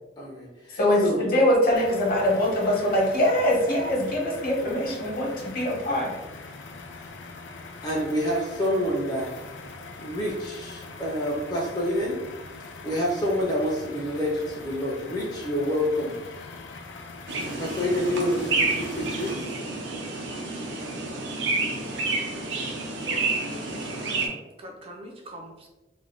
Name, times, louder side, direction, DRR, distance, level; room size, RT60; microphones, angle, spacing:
voice 1, 0.2-1.2 7.0-7.1 7.8-9.3 10.0-12.2 12.6-16.1 17.6-19.4, equal, 20° left, -4 dB, 0.5 m, -28 dB
voice 2, 0.7-6.2, left 1 dB, 55° left, -2 dB, 0.8 m, -23 dB
sound 1, 1.7-19.3, left 3 dB, 90° left, 0.4 m, -42 dB
sound 2, 17.3-24.3, right 3 dB, 80° right, 0.6 m, -29 dB
voice 3, 23.0-23.9 24.6-25.7, equal, 35° right, 1 dB, 0.4 m, -43 dB
2.5 x 2.1 x 3.4 m, 1.1 s
head